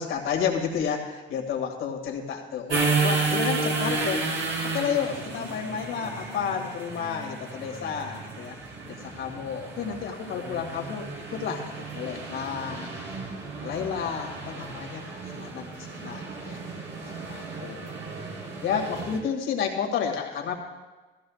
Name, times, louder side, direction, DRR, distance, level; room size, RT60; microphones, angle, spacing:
voice 1, 0.0-4.3 4.6-8.6 8.8-13.2 13.6-16.6 17.0-17.9 18.6-20.5, left 7 dB, 85° left, 1 dB, 2.0 m, -31 dB
sound 1, 2.7-19.2, right 4 dB, 85° right, 2.7 m, -32 dB
16.0 x 14.5 x 2.4 m, 1.2 s
cardioid pair, 90°, 20 cm